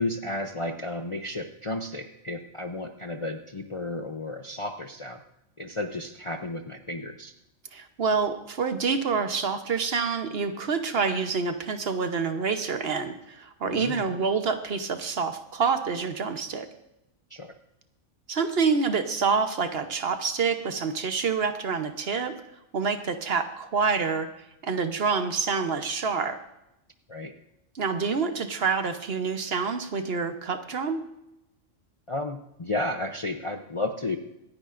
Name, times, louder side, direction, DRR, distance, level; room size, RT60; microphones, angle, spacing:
voice 1, 0.0-5.2 5.6-7.3 13.7-14.1 17.3-17.5 27.1-27.3 32.1-34.2, left 2 dB, 35° left, 5 dB, 0.5 m, -33 dB
voice 2, 7.7-16.7 18.3-22.4 22.7-24.3 24.6-26.4 27.7-31.0, right 5 dB, 55° right, 8 dB, 1.1 m, -27 dB
25.0 x 9.8 x 2.5 m, 0.87 s
omnidirectional pair, 1.3 m